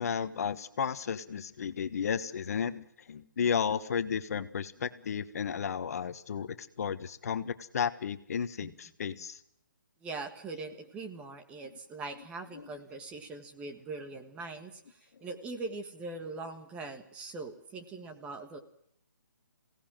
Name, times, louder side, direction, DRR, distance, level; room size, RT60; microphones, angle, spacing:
voice 1, 0.0-9.4 12.5-12.7, left 7 dB, 50° left, 12 dB, 1.3 m, -33 dB
voice 2, 10.0-18.6, right 3 dB, 10° right, 6 dB, 1.5 m, -42 dB
23.5 x 17.5 x 7.5 m, 0.70 s
hypercardioid pair, 155°, 11 cm